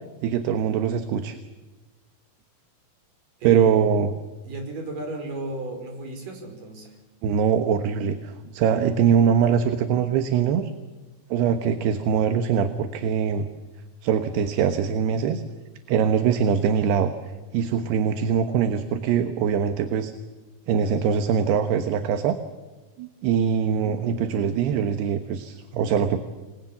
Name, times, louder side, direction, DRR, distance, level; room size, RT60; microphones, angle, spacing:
voice 1, 0.2-1.4 3.4-4.1 7.2-10.7 11.3-13.5 14.0-15.4 15.9-17.1 17.5-20.1 20.7-22.4 23.0-26.2, right 7 dB, 75° right, 8 dB, 3.2 m, -22 dB
voice 2, 3.4-3.8 4.4-7.0, right 2 dB, 50° right, 4 dB, 6.7 m, -34 dB
29.0 x 22.5 x 7.3 m, 1.2 s
omnidirectional pair, 5.0 m